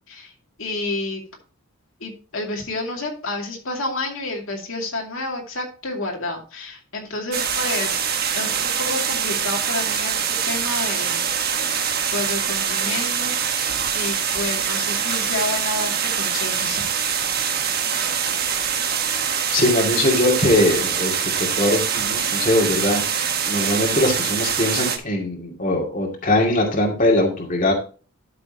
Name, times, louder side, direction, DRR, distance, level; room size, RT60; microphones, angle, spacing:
voice 1, 0.6-1.2 2.0-11.2 11.8-16.8, left 2 dB, 65° left, 0 dB, 2.5 m, -30 dB
sound 1, 7.3-25.0, right 7 dB, 45° right, 1.4 m, -24 dB
voice 2, 19.5-27.7, left 1 dB, 35° left, 0 dB, 2.4 m, -21 dB
12.5 x 6.8 x 2.8 m, 0.36 s
head